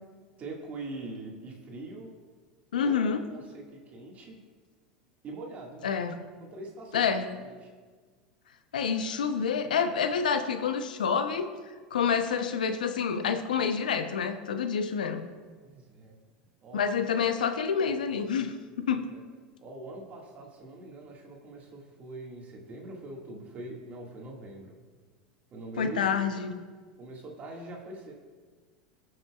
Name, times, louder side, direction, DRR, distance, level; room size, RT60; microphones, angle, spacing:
voice 1, 0.4-2.1 2.8-4.4 5.2-6.0 6.4-7.0 7.4-7.7 15.6-16.2 16.6-16.8 18.9-19.2 19.6-24.7 25.5-26.2 27.0-28.1, right 2 dB, 35° right, -1 dB, 1.9 m, -43 dB
voice 2, 2.7-3.2 5.8-6.1 6.9-7.3 8.7-11.5 11.9-15.2 16.7-19.1 25.8-26.6, left 6 dB, 85° left, 9 dB, 0.7 m, -28 dB
18.0 x 6.6 x 2.4 m, 1.5 s
hypercardioid pair, 90°, 4 cm